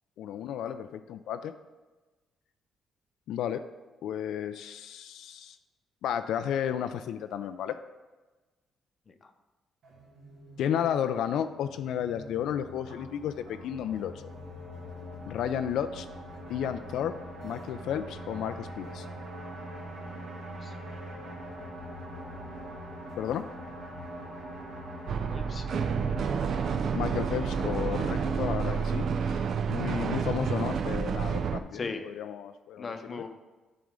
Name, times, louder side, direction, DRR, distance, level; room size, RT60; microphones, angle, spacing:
voice 1, 0.2-1.5 3.3-3.6 4.0-5.6 6.0-7.8 10.6-14.3 15.3-16.1 16.5-17.1 17.4-19.1 23.2-23.5 26.9-33.3, left 9 dB, 80° left, 9 dB, 0.3 m, -33 dB
sound 1, 9.8-28.8, equal, 80° right, 1.9 m, -43 dB
sound 2, 25.1-31.6, right 6 dB, 60° right, 0.4 m, -29 dB
voice 2, 25.3-25.8 31.7-32.0 32.8-33.3, left 4 dB, 40° left, 7 dB, 0.7 m, -38 dB
10.5 x 3.8 x 3.7 m, 1.2 s
cardioid pair, 90°, 0 cm